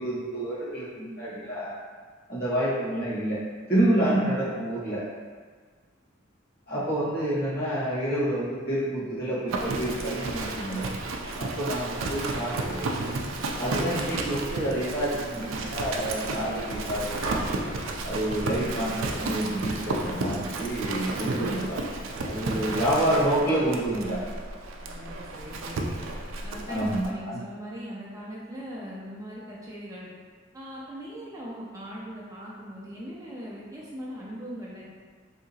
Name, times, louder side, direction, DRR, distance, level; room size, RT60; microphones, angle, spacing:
voice 1, 0.0-1.8 2.3-3.4 3.7-5.0 6.7-10.9 11.4-12.8 13.6-17.4 18.0-21.9 22.2-24.3 26.7-27.4, right 1 dB, 50° left, -9 dB, 1.2 m, -28 dB
Livestock farm animals working animals, 9.5-27.1, right 2 dB, 80° right, 0.4 m, -32 dB
voice 2, 19.4-19.7 22.2-22.7 24.8-25.9 26.4-30.1 30.5-34.8, equal, 15° right, -6 dB, 0.4 m, -40 dB
3.5 x 2.8 x 2.7 m, 1.6 s
head